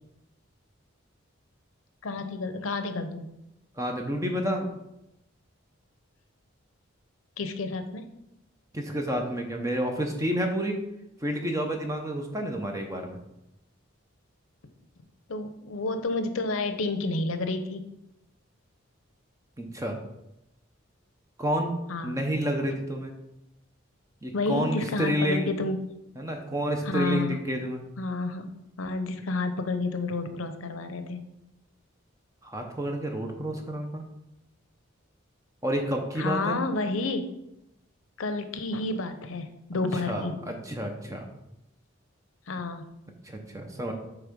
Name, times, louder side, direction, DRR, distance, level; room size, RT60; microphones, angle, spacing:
voice 1, 2.0-3.3 7.4-8.1 15.3-17.9 21.9-22.2 22.6-22.8 24.3-25.8 26.8-27.4 28.0-28.5 28.8-31.2 36.2-37.3 38.2-40.4 42.5-42.9, left 3 dB, 75° left, 8 dB, 0.7 m, -30 dB
voice 2, 3.8-4.7 8.7-10.8 11.2-13.2 19.6-20.0 21.4-23.1 24.2-25.5 26.2-27.8 32.4-34.0 35.6-36.6 40.1-41.3 43.2-43.9, equal, 15° right, 3 dB, 0.8 m, -29 dB
8.2 x 3.4 x 5.3 m, 0.88 s
head